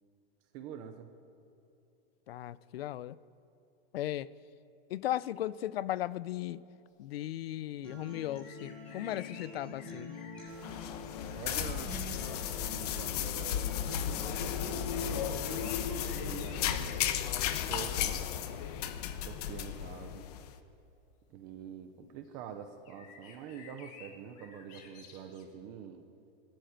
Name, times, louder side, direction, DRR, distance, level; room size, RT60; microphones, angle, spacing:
voice 1, 0.5-1.1 11.3-12.0 12.7-17.0 17.7-18.3 19.3-20.3 21.3-26.0, right 8 dB, 15° right, 0.4 m, -46 dB
voice 2, 2.3-3.2 3.9-4.3 4.9-6.6 7.0-10.1, left 13 dB, 75° left, 0.7 m, -36 dB
Acoustic guitar, 7.8-15.8, left 2 dB, 5° left, 6.4 m, -46 dB
sound 1, 8.2-11.7 12.4-12.6 15.0-17.2 19.2-19.6 20.4-20.5 22.2-22.4 22.8-25.4, left 6 dB, 25° left, 1.6 m, -54 dB
sound 2, 10.5-20.5, left 10 dB, 40° left, 1.0 m, -34 dB
22.5 x 13.5 x 9.2 m
supercardioid pair, 180°, 30 cm